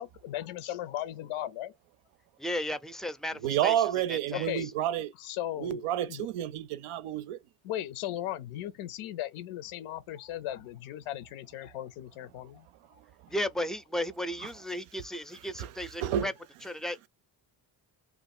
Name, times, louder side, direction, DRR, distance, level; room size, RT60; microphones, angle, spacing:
voice 1, 0.0-1.7 4.3-4.7 5.1-6.3 7.6-12.7 12.9-13.0, left 12 dB, 90° left, 0.6 m, -37 dB
voice 2, 2.4-3.8 4.1-4.5 13.3-16.3 16.6-17.1, left 1 dB, ahead, 0.4 m, -34 dB
voice 3, 3.4-5.1 5.6-7.4 15.6-15.7 16.0-16.3, right 11 dB, 85° right, 0.5 m, -29 dB
2.7 x 2.5 x 4.2 m
supercardioid pair, 55°, 49 cm